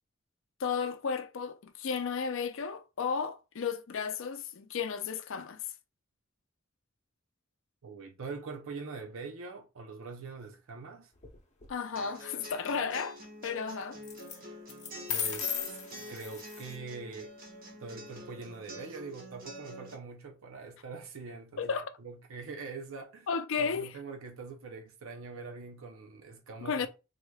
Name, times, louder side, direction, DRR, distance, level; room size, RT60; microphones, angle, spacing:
voice 1, 0.6-5.6 11.7-13.2 13.4-14.0 21.6-22.0 23.3-23.9 26.6-26.9, left 5 dB, 70° left, 0.5 m, -33 dB
voice 2, 7.8-11.1 15.1-15.8 16.1-17.3 17.8-21.7 22.0-23.3 23.6-26.9, right 4 dB, 85° right, 0.6 m, -43 dB
sound 1, 11.2-11.7 14.0-14.4 14.7-16.7, left 8 dB, 35° left, 0.7 m, -36 dB
sound 2, 12.0-19.9, equal, 45° right, 0.9 m, -47 dB
3.6 x 3.2 x 2.2 m
head